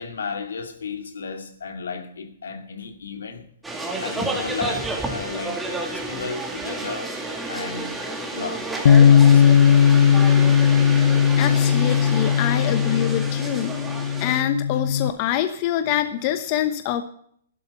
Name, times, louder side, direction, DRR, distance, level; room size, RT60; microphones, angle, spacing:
voice 1, 0.0-3.5 4.0-7.2 7.5-7.9 8.3-8.7 9.0-9.7, left 5 dB, 85° left, 2.3 m, -33 dB
sound 1, 3.6-14.4, right 2 dB, 5° right, 2.4 m, -31 dB
Bass guitar, 8.9-15.1, left 8 dB, 65° left, 0.7 m, -17 dB
voice 2, 11.4-13.7 14.2-17.0, left 11 dB, 40° left, 1.0 m, -25 dB
12.0 x 11.5 x 5.4 m
hypercardioid pair, 145°, 0 cm